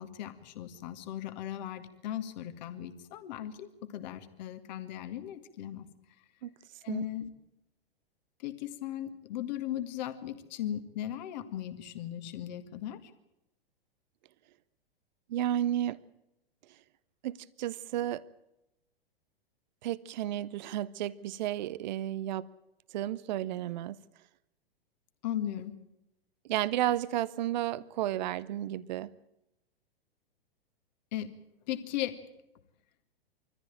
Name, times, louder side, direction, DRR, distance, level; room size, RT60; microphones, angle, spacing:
voice 1, 0.0-5.9 6.8-7.3 8.4-13.1 25.2-25.8 31.1-31.3 31.7-32.2, left 12 dB, 45° left, 2.0 m, -37 dB
voice 2, 15.3-16.0 17.2-18.3 19.8-22.5 22.9-24.0 26.5-29.1, right 13 dB, 50° right, 0.7 m, -32 dB
24.0 x 14.5 x 9.0 m
figure-of-eight pair, 105°, 30 cm